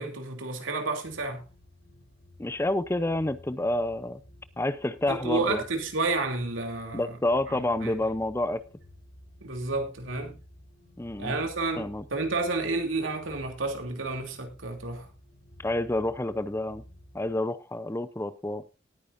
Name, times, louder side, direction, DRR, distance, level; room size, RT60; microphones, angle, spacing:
voice 1, 0.0-1.4 5.1-7.1 7.5-8.0 9.4-10.4 11.2-15.1, right 3 dB, 80° right, 2.9 m, -31 dB
sound 1, 1.0-17.3, left 1 dB, 85° left, 4.1 m, -53 dB
voice 2, 2.4-4.2 4.6-5.6 6.9-8.6 11.0-11.3 11.8-12.0 15.6-16.8 17.1-18.6, left 1 dB, 15° left, 0.6 m, -28 dB
19.0 x 9.5 x 2.6 m
head